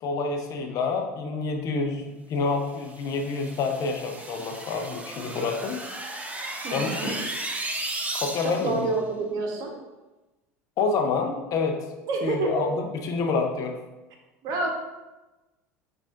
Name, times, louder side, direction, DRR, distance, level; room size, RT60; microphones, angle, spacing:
voice 1, 0.0-5.8 6.7-7.1 8.1-8.9 10.8-11.8 12.2-13.8, left 4 dB, 45° left, 3 dB, 0.6 m, -28 dB
sound 1, 2.8-8.8, right 2 dB, 15° right, 0.6 m, -35 dB
voice 2, 6.6-7.2 8.4-9.7 12.1-12.7 14.4-14.7, right 3 dB, 50° right, 1 dB, 1.0 m, -28 dB
7.1 x 2.5 x 2.4 m, 1.1 s
hypercardioid pair, 75°, 8 cm